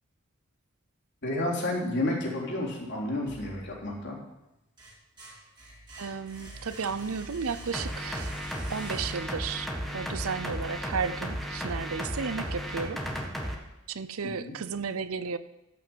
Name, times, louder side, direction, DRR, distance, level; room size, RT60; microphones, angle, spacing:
voice 1, 1.2-4.2 14.4-14.5, left 1 dB, 55° left, -3 dB, 3.5 m, -30 dB
sound 1, 3.2-4.1 4.5-9.5, right 2 dB, 20° right, 3.5 m, -47 dB
voice 2, 6.0-8.3 8.7-13.0 13.9-15.4, right 5 dB, 75° right, 14 dB, 0.6 m, -33 dB
sound 2, 7.7-13.6, equal, ahead, 1.4 m, -34 dB
14.0 x 5.9 x 8.0 m, 0.93 s
head